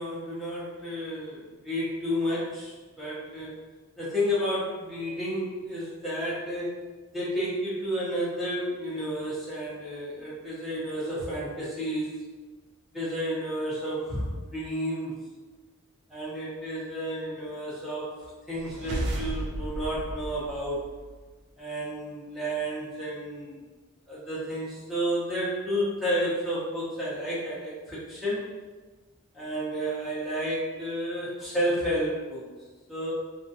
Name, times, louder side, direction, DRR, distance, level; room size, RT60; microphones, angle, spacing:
voice 1, 0.0-3.6 4.0-6.8 7.1-12.2 12.9-15.2 16.1-18.1 18.5-20.9 21.6-23.6 24.1-28.5 29.3-32.4 32.9-33.1, equal, ahead, -9 dB, 0.6 m, -31 dB
sound 1, 18.5-21.3, right 1 dB, 50° right, 0.3 m, -34 dB
2.3 x 2.2 x 2.6 m, 1.3 s
head